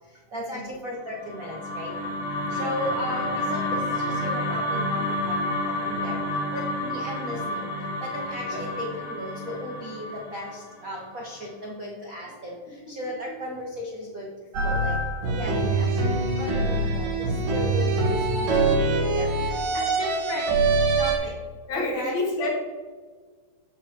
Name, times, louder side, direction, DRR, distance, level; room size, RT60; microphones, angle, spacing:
voice 1, 0.3-1.9 2.5-5.6 5.8-6.2 6.5-7.7 8.0-12.6 12.9-14.3 14.6-14.9 15.4-16.0 16.4-20.5 21.0-21.3 21.7-22.5, equal, 70° right, -3 dB, 0.7 m, -35 dB
sound 1, 1.1-11.4, left 1 dB, 85° left, 3.2 m, -30 dB
voice 2, 2.5-2.8 8.4-8.7 18.4-18.7 21.7-22.5, left 2 dB, 70° left, -1 dB, 3.0 m, -30 dB
sound 2, 14.5-21.2, right 3 dB, 90° right, 3.1 m, -24 dB
14.0 x 5.2 x 2.9 m, 1.5 s
omnidirectional pair, 3.6 m